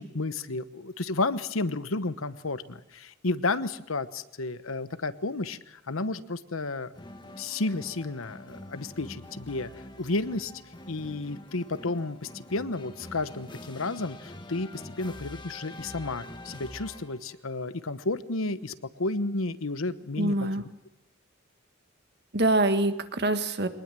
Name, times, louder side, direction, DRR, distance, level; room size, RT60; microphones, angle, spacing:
voice 1, 0.0-6.9 7.4-9.7 10.0-10.5 10.9-20.5, left 2 dB, 85° left, 13 dB, 1.1 m, -32 dB
sound 1, 6.9-17.4, left 1 dB, 20° left, 1.6 m, -45 dB
voice 2, 20.2-20.6 22.3-23.7, right 2 dB, 55° right, 9 dB, 1.8 m, -25 dB
23.5 x 19.5 x 7.7 m, 0.90 s
head